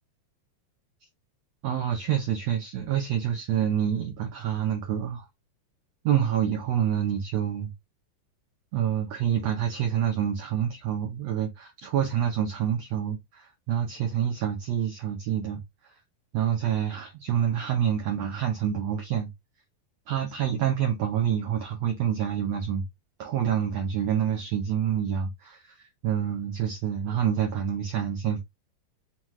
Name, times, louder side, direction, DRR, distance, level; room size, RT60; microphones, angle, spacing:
voice 1, 1.6-5.2 6.0-7.7 8.7-15.6 16.3-19.3 20.1-22.8 23.2-28.4, right 9 dB, 90° right, 1.4 m, -27 dB
5.8 x 2.3 x 3.0 m
omnidirectional pair, 4.0 m